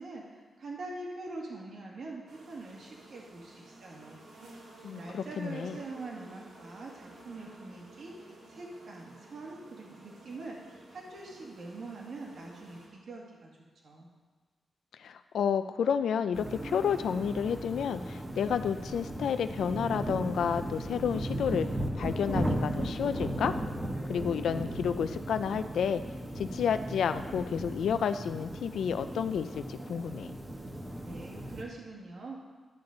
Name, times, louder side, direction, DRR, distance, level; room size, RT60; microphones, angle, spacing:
voice 1, 0.0-4.2 4.8-8.2 8.5-13.5 13.8-14.1 31.0-32.4, right 2 dB, 65° right, -2 dB, 1.8 m, -44 dB
sound 1, 2.3-12.9, right 2 dB, 85° right, 1.7 m, -53 dB
voice 2, 4.8-5.8 15.0-21.7 22.0-23.5 24.1-26.0 26.3-30.3, left 7 dB, 90° left, 10 dB, 0.3 m, -30 dB
sound 2, 16.3-31.6, right 1 dB, 15° right, 1.1 m, -36 dB
11.5 x 7.1 x 3.9 m, 1.4 s
wide cardioid pair, 130°, 0 cm